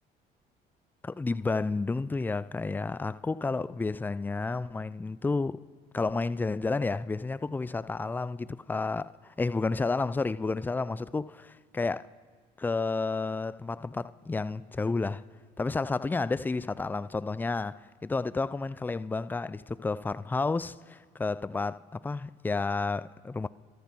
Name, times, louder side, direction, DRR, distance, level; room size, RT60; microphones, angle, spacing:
voice 1, 1.0-5.6 5.9-12.1 12.6-15.2 15.6-23.5, left 3 dB, 10° left, 0.3 m, -31 dB
17.5 x 13.0 x 6.0 m
cardioid pair, 110°, 17 cm